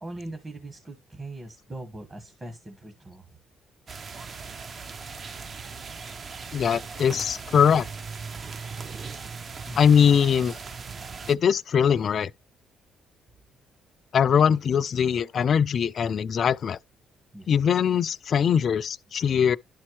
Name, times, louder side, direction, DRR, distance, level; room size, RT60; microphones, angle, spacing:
voice 1, 0.0-3.3 9.6-9.8 17.3-17.5, right 2 dB, 30° right, 1.4 m, -40 dB
sound 1, 3.9-11.4, right 5 dB, 45° right, 0.5 m, -38 dB
voice 2, 6.5-7.9 9.8-10.6 11.3-12.3 14.1-16.8 17.5-19.6, left 7 dB, 55° left, 0.3 m, -21 dB
11.5 x 4.3 x 3.1 m
cardioid pair, 90°, 0 cm